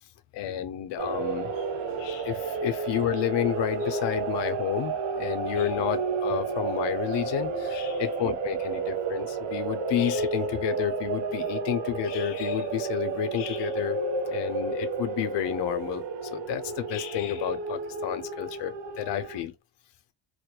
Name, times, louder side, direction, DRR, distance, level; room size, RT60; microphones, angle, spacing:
voice 1, 0.3-1.7 1.9-4.9 5.2-14.0 14.3-16.0 16.3-19.5, left 11 dB, 75° left, 0.5 m, -30 dB
sound 1, 1.0-19.4, right 4 dB, 90° right, 0.5 m, -31 dB
sound 2, 1.4-2.8, right 1 dB, 15° right, 0.5 m, -51 dB
2.3 x 2.1 x 2.8 m
cardioid pair, 105°, 43 cm